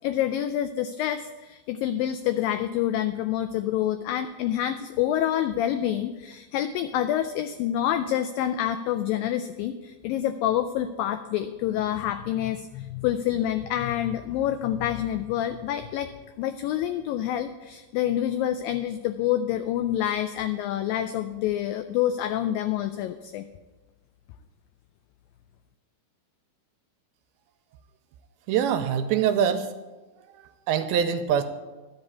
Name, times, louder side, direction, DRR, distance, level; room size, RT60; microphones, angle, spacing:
voice 1, 0.0-16.1 16.4-23.5, left 11 dB, 90° left, 10 dB, 2.0 m, -27 dB
voice 2, 28.5-29.7 30.3-31.4, right 8 dB, 80° right, 9 dB, 2.4 m, -24 dB
12.5 x 5.4 x 8.2 m, 1.2 s
omnidirectional pair, 4.6 m